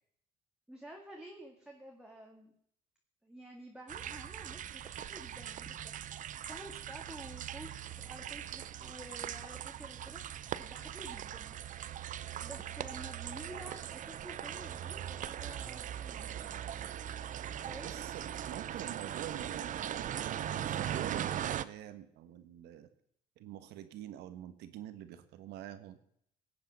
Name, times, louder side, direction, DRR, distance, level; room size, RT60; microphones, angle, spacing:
voice 1, 0.7-2.5 3.2-11.5 12.4-16.3 17.7-18.0, right 1 dB, 5° right, 0 dB, 1.9 m, -51 dB
sound 1, 3.9-21.7, right 10 dB, 50° right, 0.6 m, -40 dB
voice 2, 17.7-20.1 20.6-22.9 23.4-26.0, right 11 dB, 85° right, 11 dB, 1.3 m, -46 dB
17.5 x 8.6 x 5.4 m, 0.69 s
cardioid pair, 110°, 17 cm